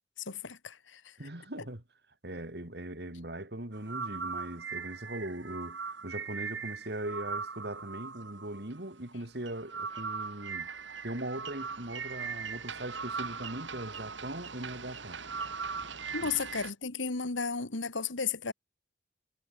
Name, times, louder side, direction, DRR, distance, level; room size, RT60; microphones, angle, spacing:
voice 1, 0.2-1.2 16.1-18.5, left 5 dB, 85° left, 1.8 m, -34 dB
voice 2, 1.2-1.8 2.2-10.7 11.0-15.2 16.2-16.3, right 1 dB, 60° right, 2.7 m, -40 dB
sound 1, 3.7-16.7, right 5 dB, 75° right, 5.9 m, -39 dB
head